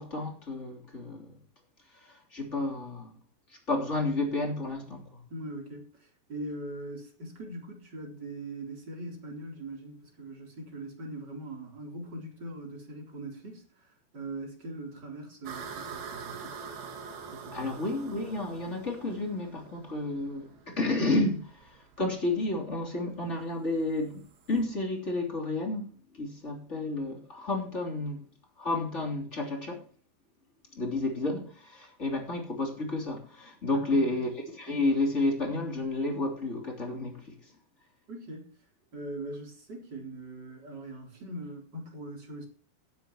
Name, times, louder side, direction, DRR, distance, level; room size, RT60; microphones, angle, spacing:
voice 1, 0.0-1.3 2.0-3.2 3.7-5.1 17.5-28.2 28.6-29.8 30.7-37.4, left 2 dB, 20° left, 2.7 m, -31 dB
voice 2, 5.3-16.6 17.3-17.7 33.7-34.2 38.1-38.5 38.9-42.5, right 1 dB, 25° right, 4.0 m, -41 dB
sound 1, 15.5-24.6, right 5 dB, 60° right, 3.6 m, -45 dB
19.0 x 9.2 x 3.0 m
omnidirectional pair, 5.3 m